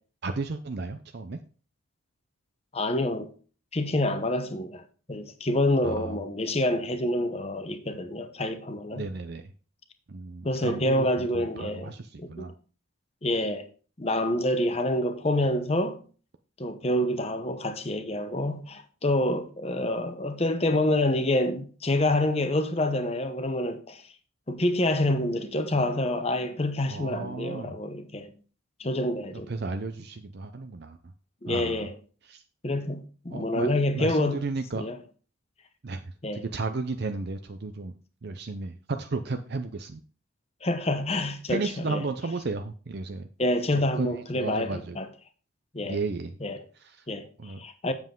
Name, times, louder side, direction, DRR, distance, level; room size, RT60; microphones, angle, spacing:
voice 1, 0.2-1.4 5.8-6.2 8.9-9.5 10.1-12.5 26.9-27.7 29.3-31.0 31.5-31.9 32.3-32.4 33.3-34.8 35.8-37.9 38.2-40.0 41.5-43.3 43.7-45.0 45.8-46.4 46.8-47.1 47.4-47.6, right 3 dB, 50° right, 0.5 m, -34 dB
voice 2, 2.7-3.3 3.7-9.1 10.4-11.9 12.2-12.5 13.2-13.7 14.0-16.0 16.6-24.0 24.5-28.3 28.8-29.5 31.4-31.9 32.6-34.4 34.7-35.0 36.2-36.4 40.6-42.0 43.4-45.1 45.7-46.0 46.4-46.6 47.1-47.9, left 1 dB, 30° left, 0.8 m, -27 dB
7.8 x 7.3 x 3.7 m
head